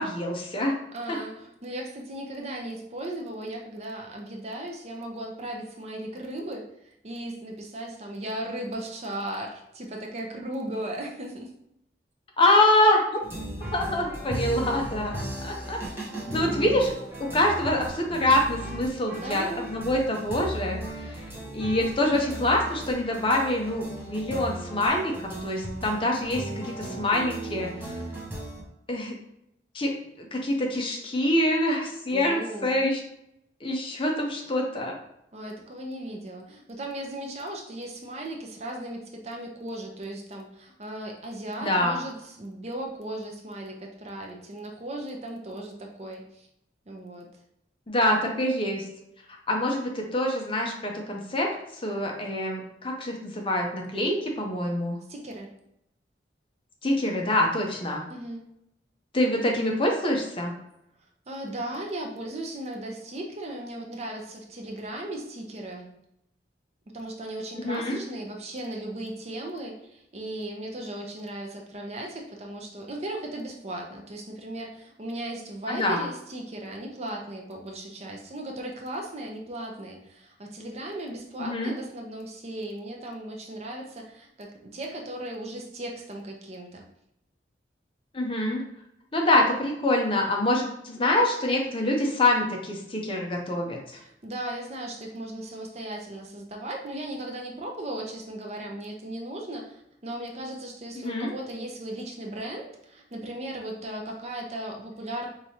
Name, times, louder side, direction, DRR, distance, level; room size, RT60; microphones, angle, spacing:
voice 1, 0.0-0.8 1.1-1.2 12.4-13.0 13.7-15.2 15.4-15.8 16.3-16.9 17.2-21.1 21.5-27.7 28.9-29.1 29.7-29.9 30.2-33.0 33.6-35.0 41.6-42.0 47.9-48.8 49.5-51.5 51.8-55.0 56.8-58.0 59.1-60.5 67.6-68.0 75.7-76.0 81.4-81.7 88.1-88.6 89.1-94.0 100.9-101.3, left 1 dB, 30° left, 1 dB, 0.6 m, -25 dB
voice 2, 0.9-6.6 7.0-11.5 16.1-16.8 19.1-19.7 32.1-32.8 35.3-46.5 46.9-47.3 55.1-55.5 58.1-58.4 61.3-65.9 66.9-86.8 94.0-105.3, right 1 dB, 40° right, 1 dB, 0.6 m, -37 dB
sound 1, 13.2-28.6, right 1 dB, 15° right, 0.9 m, -36 dB
4.7 x 2.8 x 2.8 m, 0.79 s
head